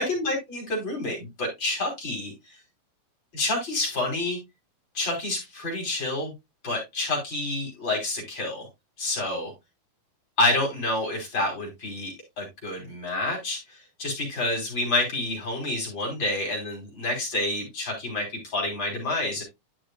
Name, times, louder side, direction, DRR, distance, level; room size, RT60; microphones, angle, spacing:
voice 1, 0.0-2.3 3.3-4.4 4.9-6.3 6.6-8.7 9.0-9.5 10.4-19.4, left 2 dB, 30° left, 0 dB, 4.1 m, -28 dB
11.5 x 6.3 x 2.3 m, 0.20 s
omnidirectional pair, 4.4 m